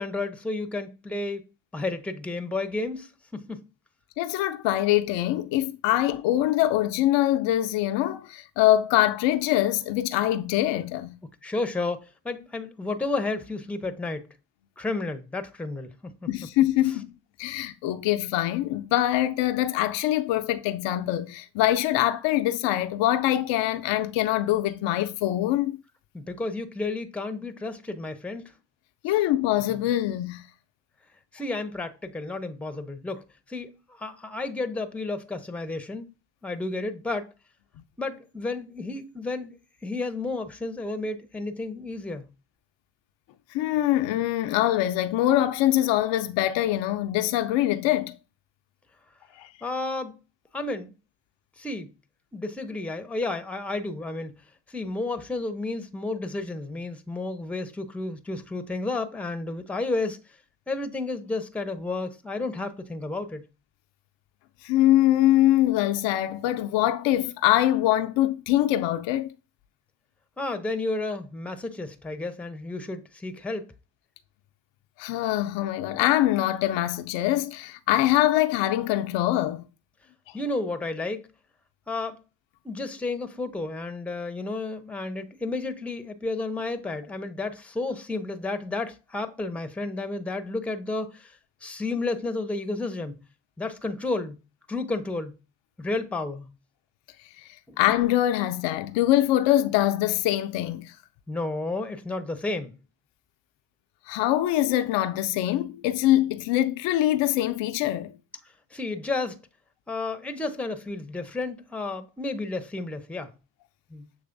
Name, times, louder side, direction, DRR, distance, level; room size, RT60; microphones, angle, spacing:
voice 1, 0.0-1.4 1.7-3.6 11.4-14.3 14.8-16.3 16.9-17.0 26.1-28.4 31.3-36.1 36.4-37.3 38.0-42.3 49.6-50.2 50.5-50.9 51.6-51.9 52.3-54.4 54.7-60.2 60.7-63.4 70.4-73.7 80.3-81.3 81.9-82.2 82.6-93.2 93.6-94.4 94.7-95.4 95.8-96.5 97.7-97.8 101.3-102.7 108.7-109.4 109.9-113.3 113.9-114.1, left 2 dB, 5° left, 0.6 m, -32 dB
voice 2, 4.2-11.2 16.3-17.1 17.4-25.7 29.0-30.4 43.5-48.2 49.4-49.5 64.6-69.3 75.0-79.6 97.8-100.9 104.1-108.1, left 14 dB, 70° left, 0.5 m, -23 dB
6.9 x 3.0 x 2.5 m
supercardioid pair, 55°, 46 cm